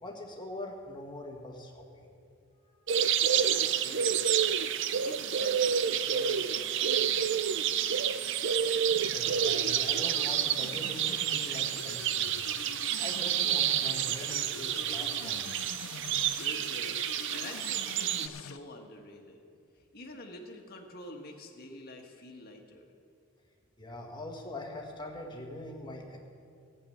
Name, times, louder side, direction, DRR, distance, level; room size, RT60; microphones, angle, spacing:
voice 1, 0.0-2.0 9.1-12.4 13.0-15.6 23.8-26.2, left 1 dB, 20° left, 0 dB, 1.6 m, -42 dB
sound 1, 2.9-18.3, right 9 dB, 55° right, 0.5 m, -29 dB
voice 2, 3.3-4.2 4.9-8.0 16.3-19.4 19.9-22.9, left 1 dB, 45° left, 2 dB, 1.5 m, -48 dB
sound 2, 9.3-18.6, left 6 dB, 75° left, 0.5 m, -45 dB
14.5 x 7.1 x 8.7 m, 2.5 s
head